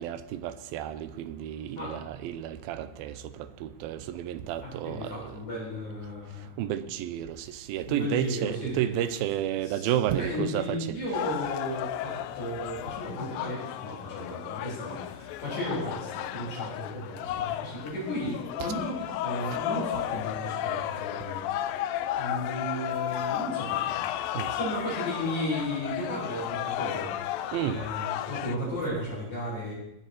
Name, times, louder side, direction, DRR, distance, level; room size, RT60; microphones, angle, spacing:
voice 1, 0.0-5.4 6.6-10.8 18.6-18.7 24.4-24.5 27.5-27.8, right 11 dB, 85° right, 2.5 m, -31 dB
voice 2, 4.6-6.5 7.8-8.9 9.6-9.9 10.2-21.6 22.2-24.0 24.5-29.8, left 1 dB, 50° left, 9.1 m, -34 dB
sound 1, 11.1-28.6, left 12 dB, 80° left, 2.3 m, -33 dB
19.5 x 10.5 x 4.6 m
omnidirectional pair, 4.2 m